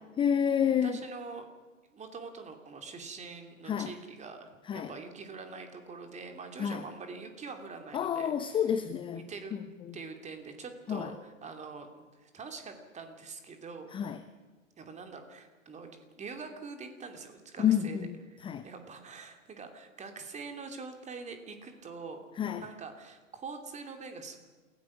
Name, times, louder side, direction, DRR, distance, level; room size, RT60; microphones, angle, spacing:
voice 1, 0.2-1.0 3.7-3.9 4.7-4.9 6.6-6.8 7.9-9.2 9.9-10.0 10.9-11.1 13.9-14.2 17.6-18.2 18.4-18.7 22.4-22.6, left 8 dB, 15° left, 0.7 m, -29 dB
voice 2, 0.8-1.5 1.9-8.6 9.1-9.6 9.9-13.9 14.8-18.4 18.6-24.5, right 4 dB, 15° right, 2.8 m, -44 dB
28.0 x 17.0 x 6.0 m
figure-of-eight pair, 105°, 39 cm